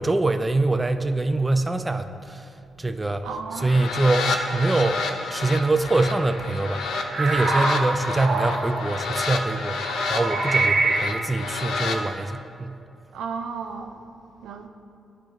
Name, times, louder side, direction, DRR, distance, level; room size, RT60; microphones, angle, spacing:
voice 1, 0.0-2.4 2.8-3.3 3.6-6.8 7.2-9.8 10.1-12.8, right 2 dB, 20° right, 9 dB, 0.3 m, -24 dB
voice 2, 3.2-3.7 13.1-14.0 14.4-14.7, right 5 dB, 90° right, 5 dB, 0.4 m, -33 dB
sound 1, 3.5-12.0, left 3 dB, 80° left, 0.5 m, -30 dB
sound 2, 6.1-6.4 6.7-8.9 9.8-11.3, right 3 dB, 60° right, 1.1 m, -25 dB
10.5 x 4.4 x 3.0 m, 2.5 s
cardioid pair, 70°, 0 cm